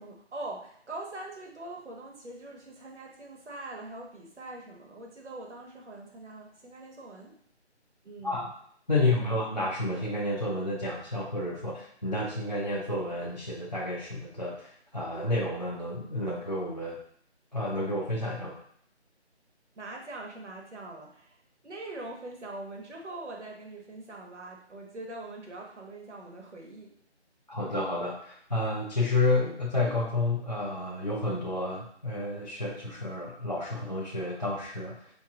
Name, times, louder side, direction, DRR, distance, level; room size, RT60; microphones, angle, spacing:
voice 1, 0.0-7.4 8.0-8.5 8.9-9.4 19.7-26.9, right 2 dB, 80° right, 0 dB, 1.2 m, -43 dB
voice 2, 8.9-17.0 17.5-18.6 27.5-35.1, left 2 dB, 40° left, -6 dB, 0.5 m, -30 dB
5.0 x 2.9 x 2.3 m, 0.63 s
figure-of-eight pair, 170°, 34 cm